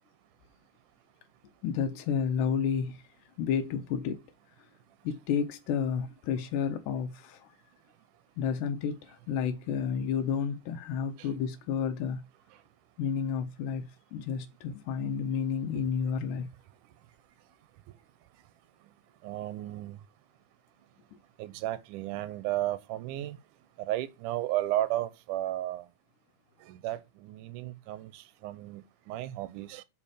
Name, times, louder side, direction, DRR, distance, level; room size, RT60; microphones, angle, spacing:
voice 1, 1.6-3.0 3.4-4.2 5.0-7.5 8.4-12.2 13.0-16.5, left 7 dB, 90° left, 2.2 m, -31 dB
voice 2, 19.2-20.0 21.4-23.4 23.9-25.8 26.7-29.8, right 14 dB, 85° right, 2.1 m, -34 dB
5.5 x 5.0 x 4.9 m
omnidirectional pair, 3.6 m